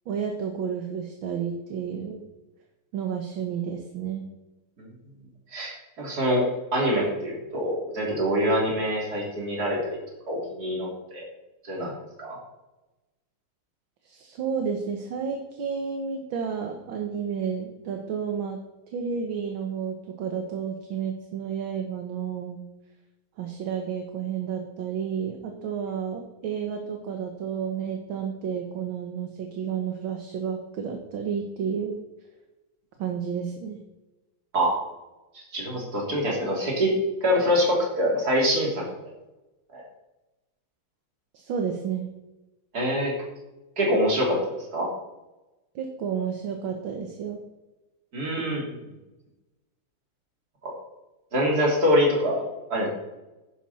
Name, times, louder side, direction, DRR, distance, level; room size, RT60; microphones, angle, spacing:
voice 1, 0.1-2.2 2.9-4.3 14.0-18.6 18.9-22.6 23.4-32.0 33.0-33.8 41.3-42.1 45.8-47.4, right 7 dB, 65° right, 4 dB, 1.8 m, -31 dB
voice 2, 5.5-6.5 6.7-9.8 10.3-11.2 11.6-11.9 12.2-12.4 34.5-34.8 35.3-36.9 37.2-38.9 39.7-39.8 42.7-43.1 43.8-44.4 44.7-44.9 48.1-48.8 50.6-50.7 51.3-52.4 52.7-52.9, equal, 45° right, -2 dB, 3.6 m, -25 dB
11.0 x 10.5 x 4.2 m, 1.0 s
omnidirectional pair, 2.4 m